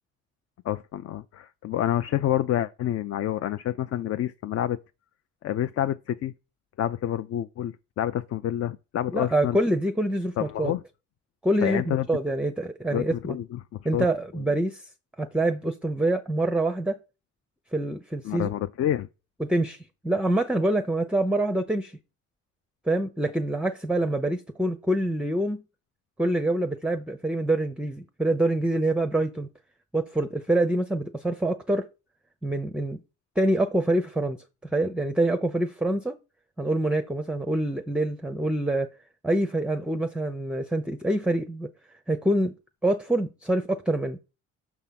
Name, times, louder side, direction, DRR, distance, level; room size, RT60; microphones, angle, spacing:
voice 1, 0.6-4.8 5.4-6.3 6.8-9.6 10.4-10.8 11.6-12.1 12.9-14.1 14.3-14.4 18.2-19.1, left 12 dB, 55° left, 0.4 m, -28 dB
voice 2, 9.1-10.7 11.4-13.4 13.8-14.9 15.2-17.0 17.7-18.5 19.4-21.9 22.9-25.6 26.2-29.5 29.9-31.9 32.4-33.0 33.4-34.4 34.7-36.2 36.6-38.9 39.2-41.7 42.1-42.5 42.8-44.2, right 1 dB, 5° right, 0.5 m, -26 dB
6.1 x 3.5 x 5.8 m
cardioid pair, 90°, 30 cm